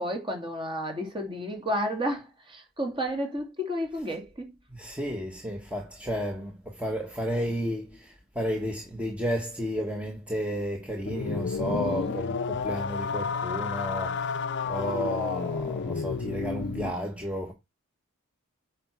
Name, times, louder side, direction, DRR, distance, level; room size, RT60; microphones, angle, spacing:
voice 1, 0.0-4.5 11.7-12.1, equal, 25° right, 2.6 m, -32 dB
voice 2, 4.7-14.4 14.6-17.5, equal, 5° right, 1.4 m, -32 dB
sound 1, 11.0-17.0, left 5 dB, 55° left, 0.6 m, -31 dB
9.0 x 5.8 x 4.6 m
head